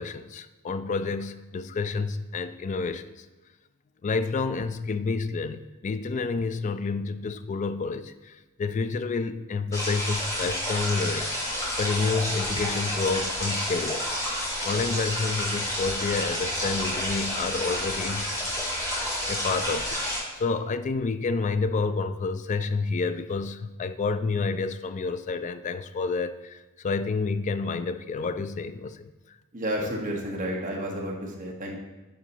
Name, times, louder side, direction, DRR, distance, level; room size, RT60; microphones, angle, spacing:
voice 1, 0.0-3.3 4.0-14.4 14.6-18.3 19.3-20.0 20.3-29.1 29.8-29.9, left 4 dB, 35° left, 11 dB, 0.3 m, -29 dB
sound 1, 9.7-20.2, left 1 dB, 15° left, 2.4 m, -30 dB
voice 2, 29.5-31.8, equal, 40° right, -2 dB, 1.2 m, -31 dB
9.3 x 5.0 x 2.9 m, 1.1 s
head